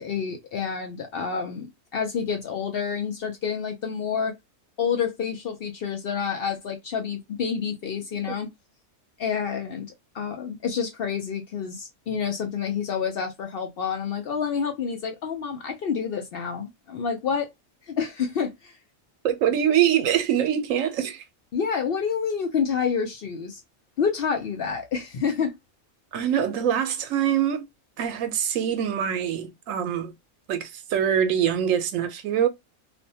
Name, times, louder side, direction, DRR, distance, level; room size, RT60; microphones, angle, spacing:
voice 1, 0.0-1.7 1.9-4.3 4.8-8.5 9.2-17.5 17.9-18.7 21.5-23.6 24.0-25.5, left 6 dB, 60° left, 0.6 m, -28 dB
voice 2, 19.2-21.2 26.1-27.7 28.0-30.1 30.5-32.5, right 9 dB, 85° right, 1.0 m, -24 dB
2.5 x 2.1 x 2.7 m
omnidirectional pair, 1.3 m